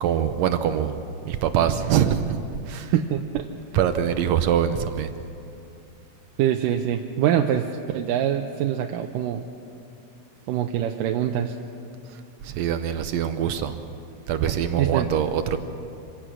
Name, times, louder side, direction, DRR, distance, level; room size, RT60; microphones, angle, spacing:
voice 1, 0.0-1.0 1.3-2.4 2.7-2.9 3.7-5.1 12.4-13.8 14.3-15.6, right 9 dB, 75° right, 9 dB, 1.7 m, -23 dB
voice 2, 2.9-3.5 6.4-9.5 10.5-11.6 14.8-15.1, right 10 dB, 90° right, 4 dB, 2.4 m, -24 dB
26.0 x 17.5 x 6.2 m, 2.7 s
omnidirectional pair, 3.8 m